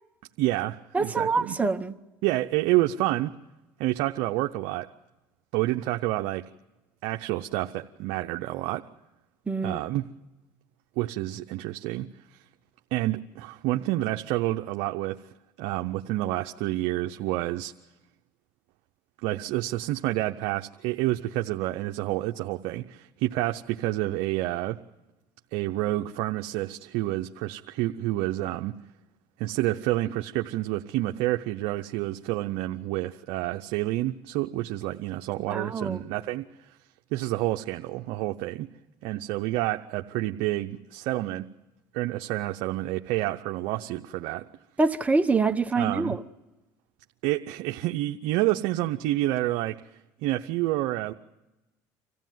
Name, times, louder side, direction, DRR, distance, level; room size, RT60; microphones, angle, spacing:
voice 1, 0.4-1.6 2.2-3.3 3.8-4.9 5.5-6.4 7.0-8.8 9.6-10.1 11.0-12.4 12.9-15.2 15.6-17.7 19.2-24.8 25.5-28.8 29.4-36.7 37.1-38.7 39.0-41.5 41.9-44.5 45.7-46.2 47.2-49.8 50.2-51.1, right 16 dB, 75° right, 0.7 m, -28 dB
voice 2, 0.9-1.9 9.5-9.8 35.5-36.0 44.8-46.2, right 4 dB, 15° right, 1.1 m, -25 dB
26.0 x 15.5 x 9.3 m
supercardioid pair, 100°, 8 cm